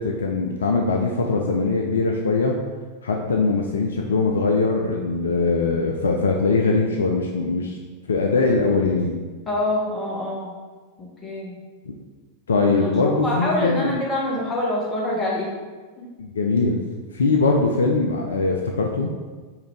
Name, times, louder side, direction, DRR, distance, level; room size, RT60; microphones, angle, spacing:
voice 1, 0.0-2.5 3.0-7.8 8.1-9.2 11.9-12.0 12.5-14.0 16.2-16.9 17.1-19.1, left 3 dB, 70° left, 1 dB, 0.3 m, -21 dB
voice 2, 9.5-10.5 11.0-11.6 12.7-15.5 16.0-16.1, left 1 dB, 20° left, -4 dB, 1.1 m, -26 dB
4.7 x 2.6 x 3.3 m, 1.4 s
figure-of-eight pair, 90°, 0 cm